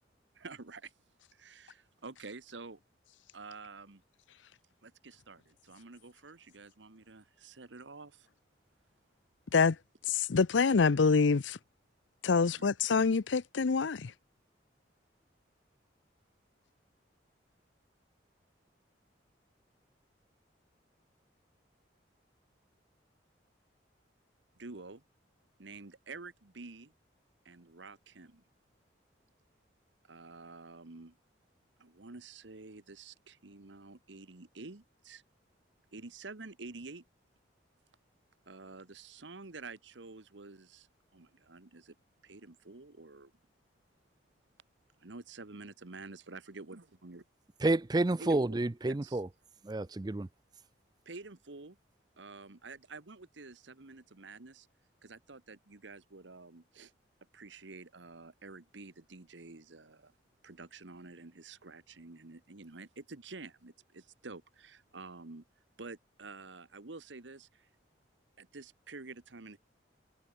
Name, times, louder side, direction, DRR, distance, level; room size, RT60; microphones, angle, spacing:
voice 1, 0.3-0.9 1.3-2.8 3.3-4.0 4.8-8.3 12.4-12.7 24.6-25.0 25.6-26.9 27.4-28.4 30.1-31.2 31.8-35.2 35.9-37.0 38.5-40.9 41.1-41.9 42.2-43.3 45.0-47.2 48.2-48.6 48.8-49.2 51.0-51.8 52.2-54.7 55.0-56.9 57.3-60.1 60.4-65.4 65.8-67.7 68.4-69.6, right 3 dB, 80° right, 1.3 m, -49 dB
voice 2, 10.1-11.6 12.2-14.1, left 5 dB, 85° left, 0.6 m, -26 dB
voice 3, 47.6-49.3 49.7-50.3, right 2 dB, 20° right, 0.4 m, -29 dB
head